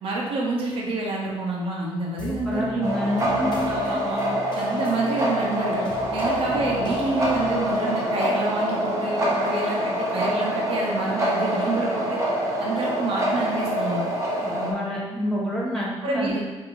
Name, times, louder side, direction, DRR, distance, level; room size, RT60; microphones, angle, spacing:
voice 1, 0.0-2.9 3.7-4.2 4.5-12.2 12.6-14.0 16.0-16.4, right 2 dB, 65° right, -3 dB, 1.0 m, -28 dB
sound 1, 2.2-10.9, left 4 dB, 50° left, 0.6 m, -38 dB
voice 2, 2.3-4.0 14.4-16.4, left 1 dB, 5° left, -5 dB, 1.0 m, -28 dB
sound 2, 2.8-14.7, equal, 30° right, 0.9 m, -25 dB
4.8 x 2.9 x 3.8 m, 1.2 s
cardioid pair, 140°, 10 cm